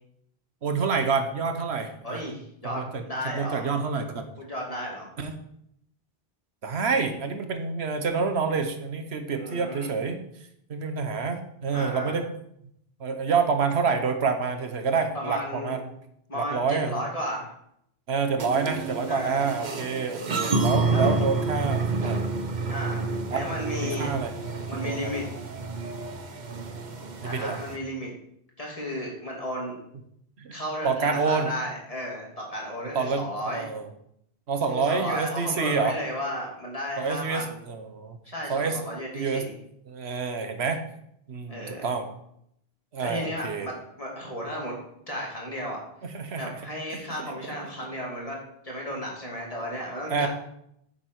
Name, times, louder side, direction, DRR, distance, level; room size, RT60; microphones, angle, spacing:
voice 1, 0.6-2.2 2.6-4.3 5.2-5.4 6.6-10.2 10.7-12.3 13.0-15.9 16.3-17.0 18.1-22.2 23.3-23.4 23.8-24.3 24.8-25.2 27.2-27.6 30.4-30.6 30.8-31.5 32.9-33.9 34.5-36.0 37.0-38.2 38.5-38.8 39.1-39.4 39.9-40.8 41.3-42.1 42.9-43.7 46.0-46.6 46.9-47.3 50.1-50.3, right 5 dB, 90° right, 7 dB, 1.3 m, -28 dB
voice 2, 2.0-3.7 4.4-5.1 9.4-10.0 11.7-12.1 15.1-15.7 16.3-17.5 19.1-19.4 20.9-21.1 22.7-24.2 24.7-25.3 27.2-28.1 28.6-29.8 30.5-33.7 34.7-37.6 38.2-39.5 41.5-41.9 43.0-44.8 45.1-45.8 46.3-48.4 48.6-50.3, equal, 35° left, -2 dB, 2.7 m, -34 dB
sound 1, 18.4-27.8, right 3 dB, 50° right, 1.0 m, -29 dB
9.3 x 7.2 x 4.7 m, 0.74 s
omnidirectional pair, 1.1 m